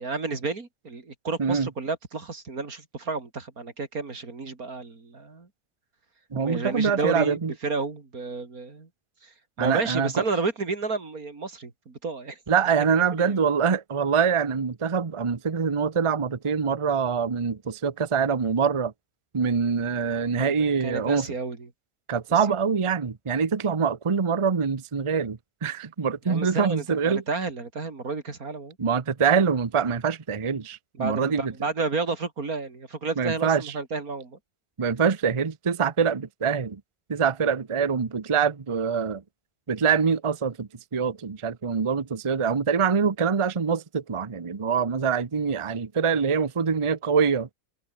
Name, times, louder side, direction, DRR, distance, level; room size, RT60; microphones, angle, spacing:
voice 1, 0.0-5.5 6.4-8.9 9.2-9.3 9.6-12.4 13.2-13.4 20.1-20.5 20.8-21.7 26.3-28.8 31.0-34.4, right 4 dB, 85° right, 3.7 m, -31 dB
voice 2, 6.3-7.5 9.6-10.2 12.5-18.9 19.3-21.3 22.1-27.2 28.8-31.5 33.2-33.7 34.8-36.8 37.1-39.2 39.7-47.5, right 6 dB, 25° right, 0.8 m, -24 dB
omnidirectional pair, 1.5 m